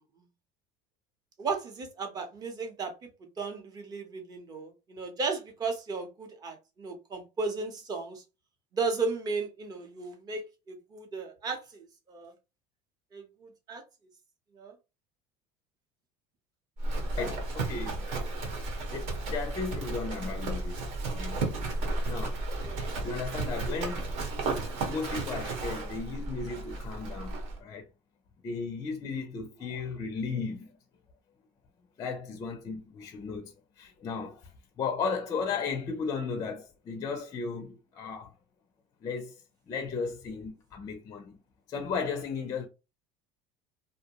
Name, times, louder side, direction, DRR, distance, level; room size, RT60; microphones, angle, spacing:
voice 1, 1.4-2.9 3.4-8.2 8.7-12.3 13.1-13.8 14.5-14.7 22.6-22.9 29.7-29.8, right 4 dB, 25° right, 0.7 m, -35 dB
Livestock farm animals working animals, 16.8-27.6, right 2 dB, 70° right, 1.0 m, -33 dB
voice 2, 17.2-18.0 18.9-20.7 21.1-21.4 22.1-22.4 23.0-24.1 24.8-27.9 28.4-30.7 32.0-34.5 34.8-38.3 39.0-39.4 39.7-41.4 41.7-42.7, left 5 dB, 25° left, 0.4 m, -35 dB
2.6 x 2.0 x 2.8 m
cardioid pair, 145°, 14 cm